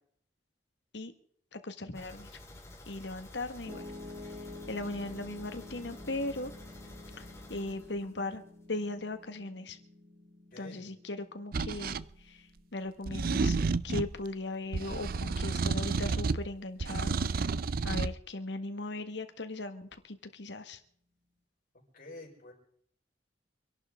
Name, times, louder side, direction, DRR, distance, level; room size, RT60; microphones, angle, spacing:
voice 1, 1.5-2.3 2.9-3.9 4.2-6.5 7.2-7.3 7.5-8.4 8.7-9.8 10.6-13.6 13.8-17.2 17.8-20.8, left 2 dB, 70° left, 8 dB, 1.6 m, -38 dB
sound 1, 1.9-8.6 8.9-9.0 9.4-9.5, left 1 dB, 15° left, 2.1 m, -50 dB
Piano, 3.7-15.8, left 2 dB, 40° right, 5.5 m, -50 dB
voice 2, 10.5-10.9 21.9-22.5, left 2 dB, 50° left, -3 dB, 4.8 m, -48 dB
sound 2, 11.5-12.0 13.1-14.2 14.7-16.5 16.8-18.1, right 4 dB, 55° right, 0.5 m, -31 dB
26.0 x 11.5 x 3.7 m, 0.63 s
head